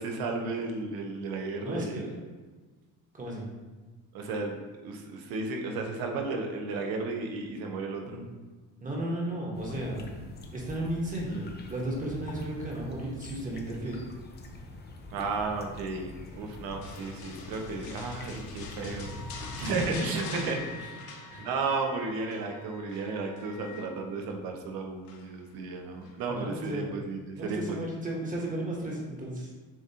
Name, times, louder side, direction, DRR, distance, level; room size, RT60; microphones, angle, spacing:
voice 1, 0.0-2.0 4.1-4.6 4.8-8.2 15.1-19.1 19.6-20.6 20.9-21.0 21.4-27.8, right 3 dB, 85° right, 3 dB, 0.8 m, -34 dB
voice 2, 1.6-2.1 3.1-3.4 8.1-8.2 8.8-10.1 10.5-14.0 19.5-20.2 21.3-21.5 26.3-26.9 27.4-29.5, right 1 dB, 25° right, -3 dB, 1.1 m, -34 dB
sound 1, 9.5-20.0, left 2 dB, 30° left, 0.5 m, -44 dB
sound 2, 16.8-21.8 22.1-22.5 22.9-23.9 25.1-25.5 26.0-26.2, left 5 dB, 85° left, 0.7 m, -45 dB
Wind instrument woodwind instrument, 19.0-23.9, left 5 dB, 60° left, 0.9 m, -48 dB
7.3 x 2.5 x 2.8 m, 1.3 s
cardioid pair, 130°, 35 cm